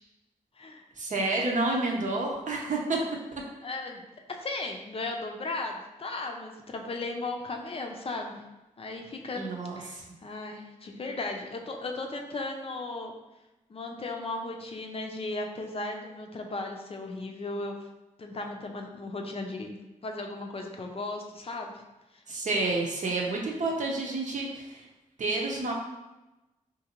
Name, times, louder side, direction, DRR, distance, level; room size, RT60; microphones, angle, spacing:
voice 1, 1.0-3.0 3.3-3.4 9.4-10.0 22.3-24.8 25.2-25.7, right 2 dB, 65° right, -1 dB, 0.7 m, -29 dB
voice 2, 3.6-4.1 4.4-8.4 8.8-9.4 9.8-13.1 13.7-17.8 18.2-19.7 20.0-21.7 22.1-22.2, left 2 dB, 45° left, 2 dB, 0.5 m, -36 dB
3.7 x 2.6 x 2.9 m, 1.0 s
wide cardioid pair, 85°, 14 cm